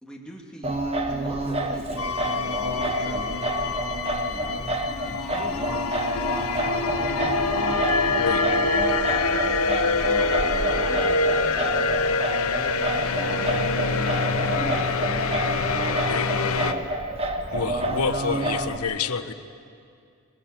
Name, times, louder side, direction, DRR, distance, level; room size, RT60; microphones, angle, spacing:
voice 1, 0.0-4.0 5.0-6.0 10.0-12.0 12.4-13.7 14.1-15.1 18.4-19.3, equal, 5° left, -2 dB, 2.2 m, -43 dB
Singing, 0.6-18.8, right 1 dB, 25° right, 1.2 m, -28 dB
sound 1, 2.0-16.7, left 3 dB, 70° left, 1.0 m, -25 dB
voice 2, 10.2-11.0 16.2-17.7, right 1 dB, 65° right, 0 dB, 5.4 m, -48 dB
voice 3, 17.5-19.3, left 5 dB, 85° left, 10 dB, 1.0 m, -28 dB
23.0 x 21.5 x 7.4 m, 2.3 s
head